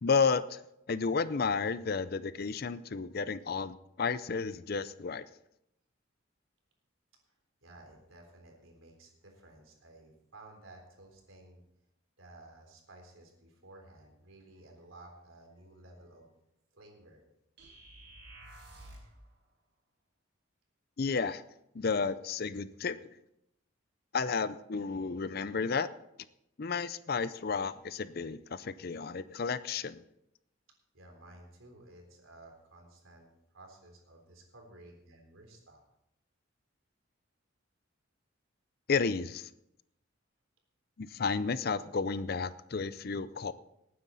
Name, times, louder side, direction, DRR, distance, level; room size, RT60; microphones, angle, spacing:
voice 1, 0.0-0.6 0.9-5.2 21.0-21.4 21.7-23.0 24.1-25.9 26.6-30.0 38.9-39.5 41.0-43.5, left 5 dB, 50° left, 15 dB, 0.5 m, -32 dB
voice 2, 7.6-11.6 12.2-16.3 16.7-17.2 30.9-33.3 33.5-35.8, right 2 dB, 85° right, 2 dB, 3.6 m, -55 dB
sound 1, 17.6-19.2, right 1 dB, 55° right, 5.1 m, -51 dB
19.0 x 9.5 x 4.1 m, 0.83 s
head